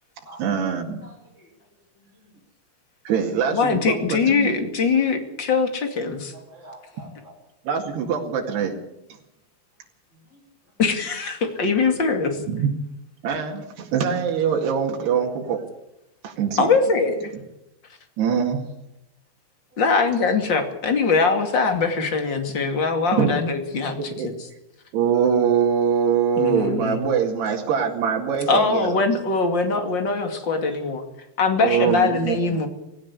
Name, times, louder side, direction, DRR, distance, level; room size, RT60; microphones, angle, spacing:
voice 1, 0.4-1.0 3.1-4.5 7.7-8.8 12.5-12.7 13.2-15.7 16.2-16.7 18.2-18.6 23.1-23.3 23.8-24.3 24.9-29.0 31.6-32.6, right 7 dB, 90° right, 1 dB, 4.2 m, -23 dB
voice 2, 1.0-1.5 2.1-2.3 3.1-3.2 6.3-7.3 10.1-10.4 19.7-19.8 27.3-27.4 30.7-30.8, right 1 dB, 20° left, -1 dB, 4.6 m, -47 dB
voice 3, 3.5-6.3 10.8-12.4 16.6-17.3 19.8-24.3 26.4-27.0 28.5-31.0 31.4-32.7, left 4 dB, 35° left, 5 dB, 2.5 m, -22 dB
18.0 x 17.0 x 8.3 m, 0.90 s
omnidirectional pair, 4.6 m